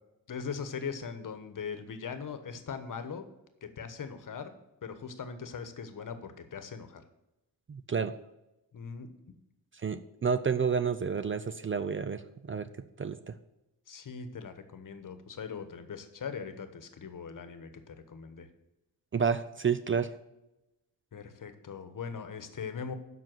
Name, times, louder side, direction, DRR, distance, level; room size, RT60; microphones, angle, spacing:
voice 1, 0.3-3.2 3.6-4.5 4.8-7.0 8.7-9.1 13.9-18.5 21.1-22.9, left 6 dB, 50° left, 9 dB, 1.2 m, -40 dB
voice 2, 7.7-8.1 9.8-12.7 13.0-13.3 19.1-20.1, right 6 dB, 30° right, 11 dB, 0.5 m, -30 dB
7.5 x 5.8 x 7.7 m, 0.93 s
cardioid pair, 95°, 40 cm